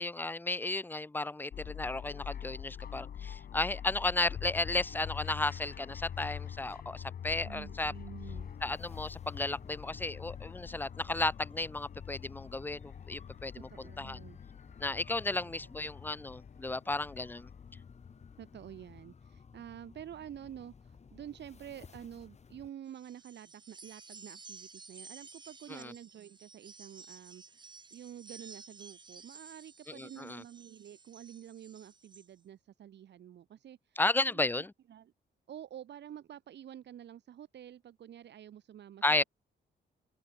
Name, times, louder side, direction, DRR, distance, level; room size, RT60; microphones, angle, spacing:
voice 1, 0.0-7.9 8.6-14.2 14.8-17.5 25.7-25.9 29.9-30.4 34.0-34.7 39.0-39.2, left 2 dB, 10° left, 0.7 m, -34 dB
sound 1, 1.5-19.0, left 9 dB, 55° left, 1.5 m, -45 dB
voice 2, 7.4-8.5 13.5-14.4 15.3-15.9 18.4-35.1 35.5-39.2, right 10 dB, 70° right, 4.1 m, -49 dB
sound 2, 8.3-22.7, left 5 dB, 35° left, 6.6 m, -53 dB
sound 3, 22.9-32.3, right 4 dB, 25° right, 2.1 m, -53 dB
open air
cardioid pair, 135°, 18 cm